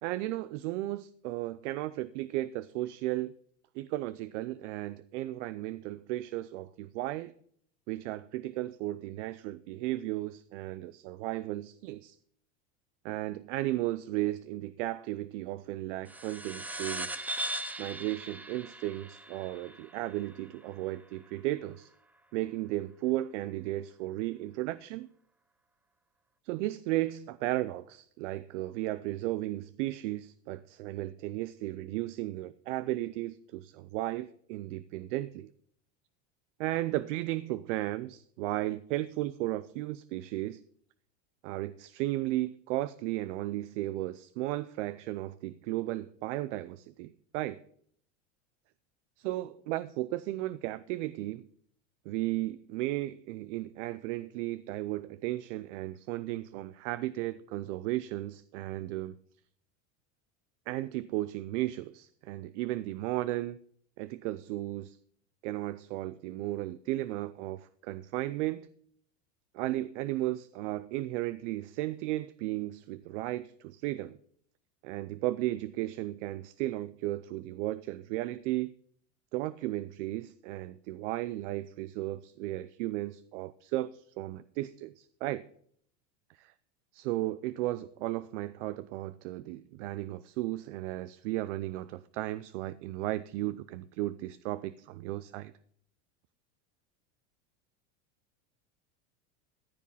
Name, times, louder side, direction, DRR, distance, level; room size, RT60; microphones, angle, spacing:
voice 1, 0.0-3.3 3.7-7.3 7.9-12.2 13.0-17.2 17.8-21.9 22.3-25.1 26.4-35.5 36.6-40.6 41.4-47.6 49.2-51.4 52.1-59.1 60.7-63.6 64.0-65.0 65.4-68.7 69.5-74.2 74.8-78.7 79.3-85.4 86.4-86.5 86.9-95.5, right 16 dB, 75° right, 0.6 m, -35 dB
sound 1, 16.1-21.0, right 1 dB, 5° right, 0.4 m, -39 dB
14.5 x 7.4 x 5.6 m
supercardioid pair, 130°, 36 cm